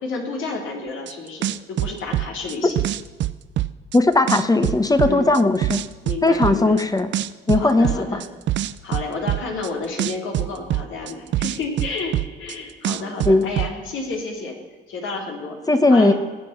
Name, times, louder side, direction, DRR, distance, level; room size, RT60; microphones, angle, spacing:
voice 1, 0.0-2.8 5.0-5.3 6.0-6.8 7.6-8.2 8.8-14.6 14.9-15.6 15.9-16.1, left 3 dB, 75° left, 1 dB, 3.3 m, -30 dB
sound 1, 1.1-1.2 1.4-4.0 4.3-6.8 7.1-9.7 10.0-12.6 12.8-13.7, right 13 dB, 70° right, 0.6 m, -24 dB
voice 2, 3.9-5.8 6.2-7.1 7.5-8.2 13.2-13.5 15.7-16.1, left 2 dB, 20° left, 9 dB, 1.1 m, -17 dB
20.0 x 7.7 x 5.9 m, 1.4 s
cardioid pair, 90°, 20 cm